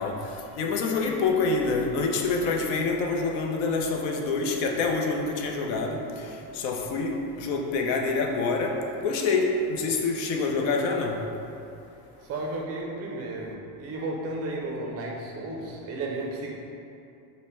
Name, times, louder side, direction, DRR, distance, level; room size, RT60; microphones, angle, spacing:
voice 1, 0.0-8.8 9.0-11.2, left 4 dB, 65° left, 2 dB, 0.7 m, -27 dB
voice 2, 12.3-16.5, right 2 dB, 35° right, -1 dB, 0.4 m, -33 dB
5.1 x 2.1 x 4.3 m, 2.7 s
cardioid pair, 155°, 45 cm